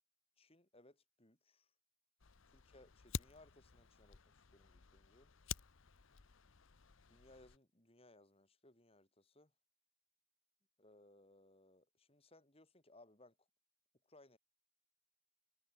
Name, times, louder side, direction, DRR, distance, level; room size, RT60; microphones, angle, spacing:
voice 1, 0.4-1.7 2.5-5.3 7.1-9.5 10.8-13.3 14.1-14.4, left 2 dB, 25° left, 3.4 m, -65 dB
Fire, 2.2-7.6, left 6 dB, 60° left, 0.9 m, -50 dB
head